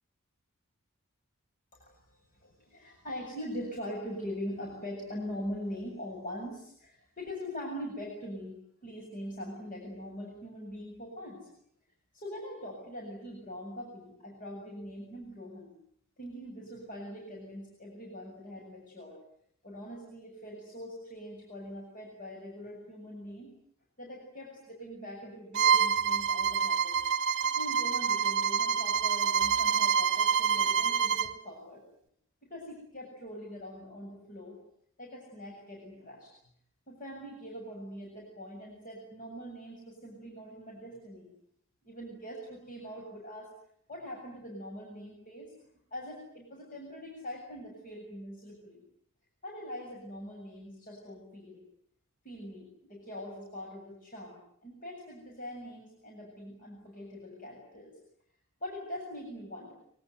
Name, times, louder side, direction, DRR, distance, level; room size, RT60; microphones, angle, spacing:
voice 1, 1.7-11.5 12.1-15.8 16.2-19.2 19.6-23.5 24.0-27.0 27.5-31.8 32.4-34.6 35.0-36.3 36.9-41.3 41.8-43.5 43.9-45.5 45.9-48.8 49.4-51.6 52.2-58.0 58.6-59.7, equal, 40° left, -1 dB, 7.6 m, -42 dB
Bowed string instrument, 25.5-31.3, right 7 dB, 55° right, 1.2 m, -27 dB
25.5 x 25.0 x 9.4 m, 0.69 s
head